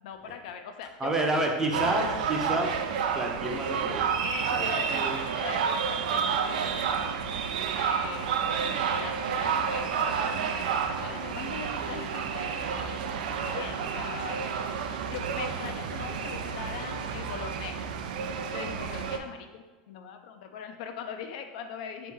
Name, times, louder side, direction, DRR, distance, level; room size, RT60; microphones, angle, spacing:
voice 1, 0.0-1.5 4.2-7.2 7.8-13.0 13.3-14.6 14.9-17.9 18.5-22.1, left 7 dB, 65° left, 6 dB, 0.4 m, -41 dB
voice 2, 1.0-2.7 3.1-4.1 4.5-5.2, right 2 dB, 10° right, 0 dB, 0.5 m, -29 dB
sound 1, 1.7-19.2, right 6 dB, 80° right, 0.4 m, -30 dB
4.2 x 2.8 x 3.6 m, 1.3 s
supercardioid pair, 140°, 5 cm